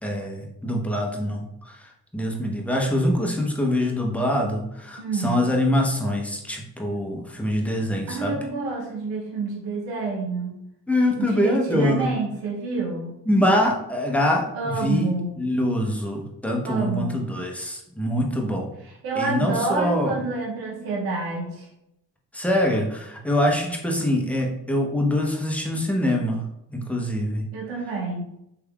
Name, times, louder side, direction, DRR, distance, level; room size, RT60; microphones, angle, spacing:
voice 1, 0.0-8.4 10.9-12.1 13.3-18.7 19.2-20.1 22.3-26.4 26.7-27.4, left 1 dB, 5° left, 0 dB, 0.8 m, -24 dB
voice 2, 5.0-5.4 8.1-10.5 11.1-13.1 14.5-15.3 16.7-17.2 18.8-21.7 27.5-28.3, right 3 dB, 90° right, -1 dB, 0.8 m, -28 dB
3.3 x 3.2 x 2.3 m, 0.80 s
supercardioid pair, 50°, 43 cm